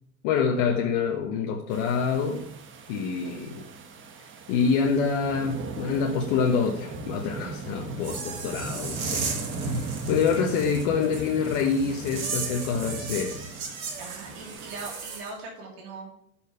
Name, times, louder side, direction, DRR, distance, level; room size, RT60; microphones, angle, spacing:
voice 1, 0.2-2.5 2.9-3.7 4.5-9.2 9.6-13.5, left 6 dB, 60° left, 1 dB, 1.3 m, -26 dB
sound 1, 1.7-14.9, right 3 dB, 30° right, 1.2 m, -38 dB
sound 2, 8.0-15.3, right 5 dB, 85° right, 2.2 m, -36 dB
voice 2, 14.0-16.1, right 3 dB, 60° right, -2 dB, 2.8 m, -40 dB
6.4 x 5.8 x 6.9 m, 0.74 s
hypercardioid pair, 105°, 42 cm